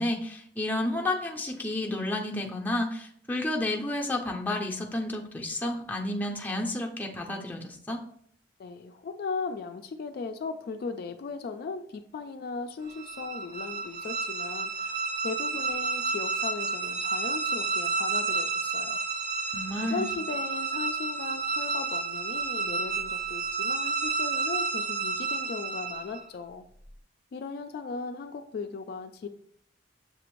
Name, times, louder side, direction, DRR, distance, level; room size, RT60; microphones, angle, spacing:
voice 1, 0.0-8.0 19.5-20.1, left 1 dB, 10° left, 0 dB, 0.5 m, -31 dB
voice 2, 8.6-19.0 19.8-26.7 27.3-29.3, left 4 dB, 55° left, 7 dB, 0.3 m, -37 dB
sound 1, 12.9-26.3, right 4 dB, 65° right, 0.7 m, -31 dB
6.8 x 2.5 x 3.0 m, 0.63 s
head